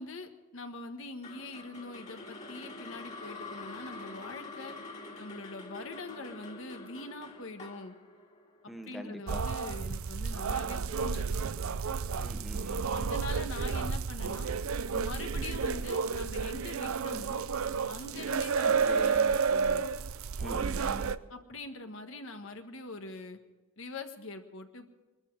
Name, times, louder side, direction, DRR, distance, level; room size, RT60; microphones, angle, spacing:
voice 1, 0.0-4.8 5.2-7.9 8.9-11.4 12.9-14.5 14.9-17.5 17.9-19.9 21.3-23.4 23.8-24.9, left 2 dB, 70° left, 6 dB, 1.5 m, -43 dB
sound 1, 1.2-9.4, left 3 dB, 35° left, 2.4 m, -46 dB
voice 2, 8.7-9.4 12.2-13.1 18.6-19.2 20.4-21.2, equal, ahead, 4 dB, 1.2 m, -43 dB
sound 2, 9.3-21.2, right 5 dB, 85° right, 0.6 m, -31 dB
22.0 x 13.0 x 4.8 m, 1.2 s
head